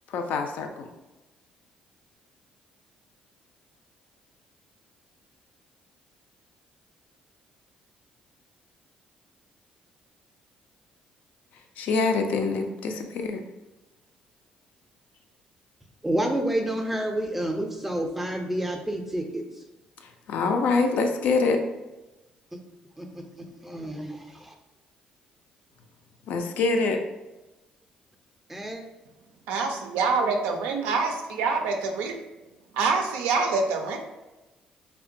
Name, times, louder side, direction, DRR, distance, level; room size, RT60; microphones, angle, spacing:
voice 1, 0.1-0.9 11.8-13.4 20.3-21.6 26.3-27.0, left 4 dB, 75° left, 5 dB, 0.3 m, -25 dB
voice 2, 16.0-19.4 23.0-23.2 23.6-24.5 28.5-28.8, right 1 dB, 5° right, 3 dB, 0.4 m, -29 dB
voice 3, 29.5-32.1 32.7-34.0, right 4 dB, 90° right, 4 dB, 0.3 m, -25 dB
2.7 x 2.2 x 2.5 m, 1.1 s
supercardioid pair, 75°, 3 cm